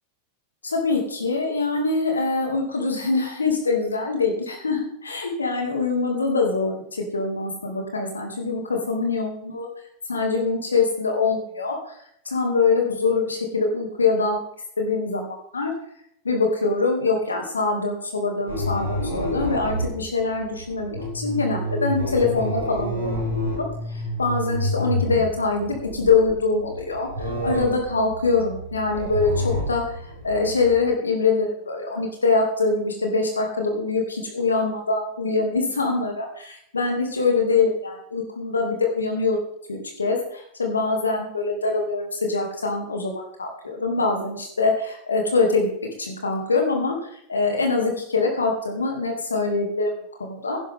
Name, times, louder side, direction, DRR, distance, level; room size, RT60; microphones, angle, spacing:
voice 1, 0.6-9.7 10.1-11.8 12.2-14.4 14.8-15.7 16.2-23.1 23.6-39.4 39.7-45.7 46.0-50.6, left 4 dB, 75° left, 2 dB, 2.7 m, -24 dB
sound 1, 18.5-30.8, equal, 80° right, 5.7 m, -29 dB
17.0 x 11.0 x 3.7 m, 0.70 s
figure-of-eight pair, 90°, 0 cm